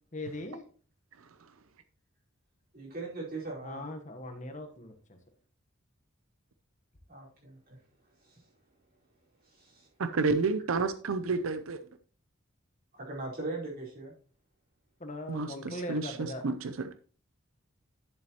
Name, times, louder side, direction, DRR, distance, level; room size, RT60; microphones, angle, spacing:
voice 1, 0.1-0.6 3.6-5.2 15.0-16.4, left 1 dB, 35° left, 6 dB, 1.2 m, -40 dB
voice 2, 2.7-3.8 7.1-7.6 8.2-8.4 9.5-9.9 12.9-14.1, right 2 dB, 45° right, -4 dB, 4.5 m, -39 dB
voice 3, 10.0-11.8 15.3-16.9, right 4 dB, 90° right, 10 dB, 0.6 m, -30 dB
11.0 x 7.3 x 3.0 m, 0.39 s
head